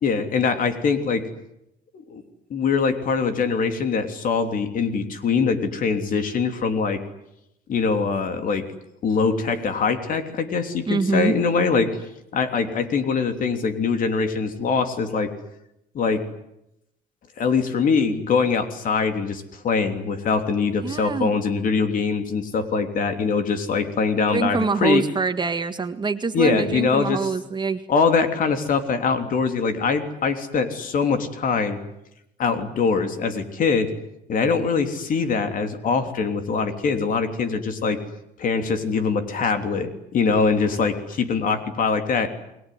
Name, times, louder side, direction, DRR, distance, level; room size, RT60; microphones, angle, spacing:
voice 1, 0.0-1.2 2.1-2.2 2.5-7.0 7.7-8.6 9.0-11.9 12.3-15.3 15.9-16.2 17.4-25.0 26.3-27.3 27.9-31.8 32.4-33.9 34.3-38.0 38.4-42.3, left 5 dB, 55° left, 7 dB, 3.3 m, -23 dB
voice 2, 10.9-11.4 20.8-21.3 24.3-27.8, right 4 dB, 25° right, 8 dB, 1.8 m, -24 dB
29.0 x 21.0 x 9.5 m, 0.83 s
cardioid pair, 110°, 17 cm